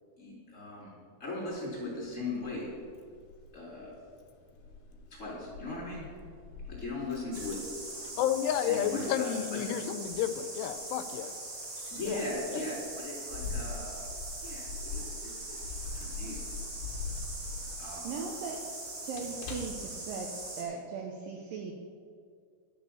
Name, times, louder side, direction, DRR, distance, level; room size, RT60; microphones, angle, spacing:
voice 1, 0.2-0.9 1.2-2.7 3.5-4.1 5.1-6.3 6.6-7.6 8.0-8.2 8.5-9.6 11.9-14.1 14.4-16.5 17.3-18.2, left 2 dB, 20° left, -5 dB, 3.4 m, -39 dB
Keys jangling, 1.5-20.5, left 4 dB, 70° left, 2.2 m, -45 dB
sound 1, 7.3-20.6, right 2 dB, 55° right, 0.9 m, -41 dB
voice 2, 8.2-11.3 12.1-12.2 12.5-12.6, left 10 dB, 90° left, 11 dB, 2.7 m, -31 dB
voice 3, 18.0-18.6 19.0-20.3 20.6-21.7, right 5 dB, 75° right, 1 dB, 2.1 m, -38 dB
11.0 x 6.7 x 6.9 m, 2.2 s
omnidirectional pair, 4.7 m